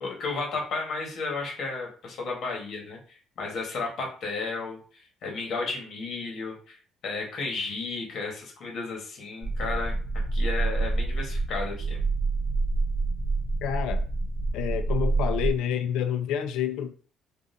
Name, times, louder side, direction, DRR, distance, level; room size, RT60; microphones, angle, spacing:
voice 1, 0.0-6.8 7.0-10.0 10.3-12.0, left 3 dB, 50° left, 1.1 m, -33 dB
sound 1, 9.4-15.5, right 3 dB, 25° right, 0.8 m, -27 dB
voice 2, 13.6-14.0 14.5-16.9, left 9 dB, 85° left, 0.3 m, -28 dB
3.7 x 2.3 x 2.6 m
cardioid pair, 150°, 0 cm